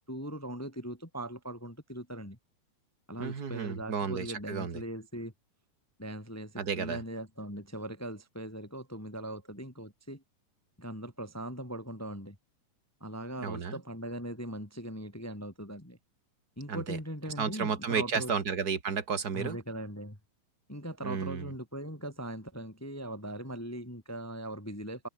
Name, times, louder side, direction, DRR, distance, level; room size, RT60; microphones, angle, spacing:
voice 1, 0.1-2.4 3.1-5.3 6.0-10.2 10.8-12.4 13.0-16.0 16.6-18.3 19.3-20.2 20.7-25.1, right 1 dB, 5° left, 2.0 m, -40 dB
voice 2, 3.2-4.8 6.6-7.0 13.4-13.8 16.7-17.0 17.4-19.6 21.0-21.5, right 6 dB, 35° right, 2.0 m, -32 dB
omnidirectional pair, 3.6 m